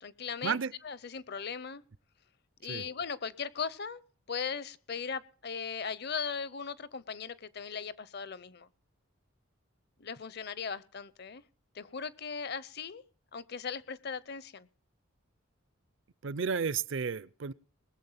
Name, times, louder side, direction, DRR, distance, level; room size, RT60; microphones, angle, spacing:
voice 1, 0.0-1.8 2.6-4.0 4.3-8.7 10.0-11.4 11.7-13.0 13.3-14.7, left 6 dB, 50° left, 0.7 m, -38 dB
voice 2, 16.2-17.5, right 6 dB, 60° right, 0.5 m, -32 dB
20.5 x 7.5 x 5.7 m
head